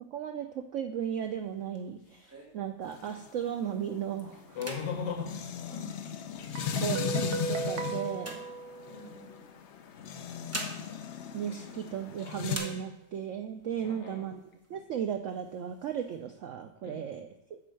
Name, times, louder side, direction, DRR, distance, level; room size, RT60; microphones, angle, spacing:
voice 1, 0.1-4.6 6.8-8.4 11.3-14.4 14.7-17.6, right 9 dB, 90° right, 6 dB, 0.6 m, -36 dB
sound 1, 1.3-3.4 3.9-4.1 4.5-6.4 7.1-9.2 10.1-12.1 12.5-13.3 13.8-13.9 14.2-14.8 15.3-16.2, right 1 dB, 15° right, 0.6 m, -45 dB
sound 2, 2.8-12.6, left 8 dB, 70° left, 0.6 m, -37 dB
voice 2, 4.6-6.0 8.9-9.3 11.5-11.7 13.8-14.3 16.8-17.0, left 6 dB, 85° left, 3 dB, 1.8 m, -38 dB
Guitar, 6.6-9.3, right 4 dB, 55° right, 0.9 m, -36 dB
8.5 x 4.5 x 6.4 m, 0.88 s
omnidirectional pair, 1.9 m